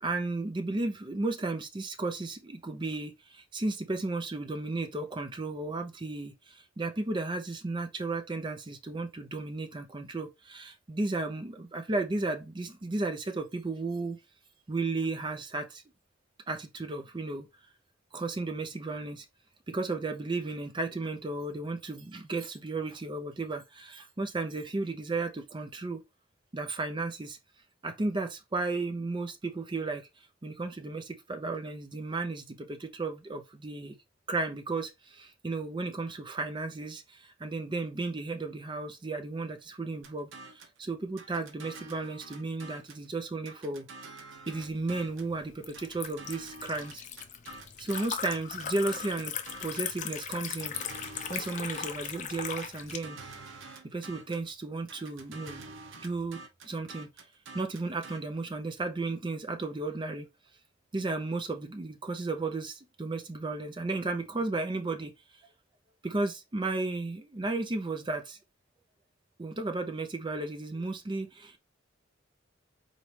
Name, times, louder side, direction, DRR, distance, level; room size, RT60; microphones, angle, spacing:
voice 1, 0.0-14.2 14.7-15.8 16.5-17.5 18.1-19.3 19.7-26.0 26.5-27.4 27.8-30.1 30.4-34.0 34.3-43.9 44.5-47.0 47.8-50.8 51.3-53.2 53.8-55.7 56.0-56.4 56.6-57.1 57.5-60.3 60.9-65.1 66.0-68.4 69.4-71.6, right 3 dB, 25° right, 0.5 m, -34 dB
sound 1, 40.0-40.8 41.2-43.1 43.4-45.3 45.7-49.9 50.3-52.2 52.6-54.5 54.9-58.2, right 3 dB, 75° right, 0.8 m, -48 dB
Liquid, 44.6-53.0, left 8 dB, 40° left, 0.5 m, -39 dB
4.0 x 3.1 x 3.2 m
head